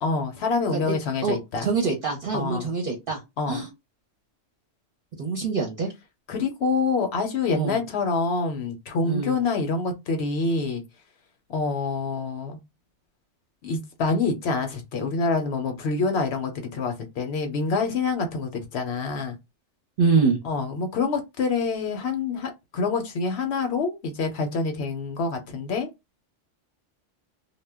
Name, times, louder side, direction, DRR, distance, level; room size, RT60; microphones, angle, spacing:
voice 1, 0.0-1.7 2.3-2.7 3.4-3.6 6.3-10.8 11.5-12.6 13.6-19.4 20.4-25.9, left 4 dB, 65° left, 0.8 m, -26 dB
voice 2, 1.2-3.2 3.5-3.7 5.2-5.9 7.5-7.8 9.0-9.3 20.0-20.4, right 4 dB, 55° right, 0.7 m, -25 dB
2.1 x 2.0 x 3.4 m
omnidirectional pair, 1.3 m